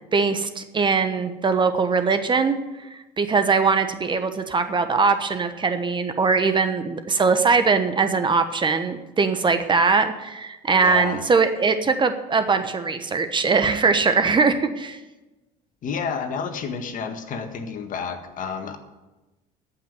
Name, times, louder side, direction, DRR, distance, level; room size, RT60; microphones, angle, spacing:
voice 1, 0.1-15.0, right 4 dB, 25° right, 9 dB, 1.1 m, -21 dB
voice 2, 10.7-11.2 15.8-18.8, left 6 dB, 50° left, 6 dB, 1.7 m, -30 dB
13.5 x 5.9 x 9.4 m, 1.1 s
supercardioid pair, 90°, 17 cm